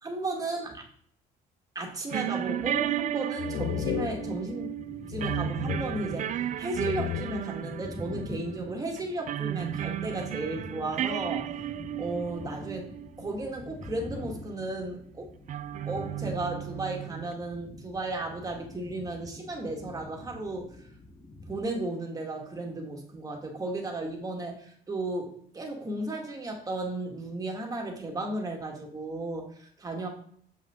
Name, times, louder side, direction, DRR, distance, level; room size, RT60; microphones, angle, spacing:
voice 1, 0.0-0.8 1.7-4.7 5.1-11.6 12.0-12.9 13.2-15.3 15.8-20.8 21.5-30.1, right 2 dB, 20° right, 1 dB, 1.8 m, -34 dB
sound 1, 2.1-13.3 13.7-13.9 15.5-17.3, right 11 dB, 45° right, 0.4 m, -34 dB
sound 2, 2.6-3.0 3.4-4.8 5.1-6.4 6.7-7.7, left 13 dB, 80° left, 0.4 m, -35 dB
sound 3, 3.4-21.6, left 1 dB, 20° left, 1.1 m, -45 dB
6.9 x 5.7 x 3.6 m, 0.63 s
cardioid pair, 110°, 17 cm